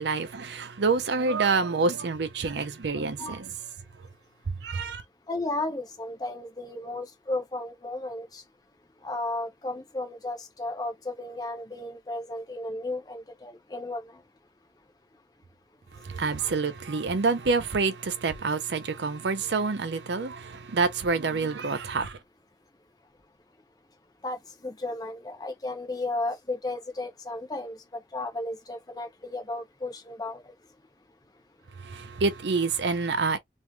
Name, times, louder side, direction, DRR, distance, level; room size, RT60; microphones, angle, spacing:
voice 1, 0.0-3.5 4.6-5.0 16.1-22.1 31.9-33.4, right 4 dB, 80° right, 0.6 m, -27 dB
voice 2, 5.3-8.4 9.0-14.1 24.2-24.4 24.6-30.5, left 2 dB, 20° left, 0.6 m, -34 dB
3.1 x 2.5 x 2.2 m
head